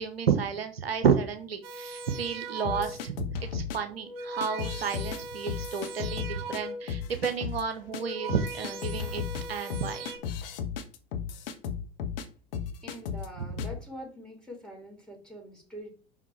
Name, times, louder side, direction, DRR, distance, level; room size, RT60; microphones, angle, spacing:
voice 1, 0.0-9.2 9.5-10.0, right 6 dB, 85° right, 7 dB, 1.0 m, -31 dB
sound 1, 1.6-3.1 3.8-7.0 7.7-10.2, right 2 dB, 65° right, 2.2 m, -40 dB
sound 2, 2.6-3.8 4.4-5.2 5.5-6.6 6.9-7.6 7.9-8.0 8.3-12.3 12.5-13.3 13.6-13.8, left 7 dB, 70° left, 1.1 m, -35 dB
voice 2, 12.8-15.9, equal, 5° left, -1 dB, 4.5 m, -44 dB
5.9 x 5.8 x 4.7 m, 0.38 s
hypercardioid pair, 75°, 30 cm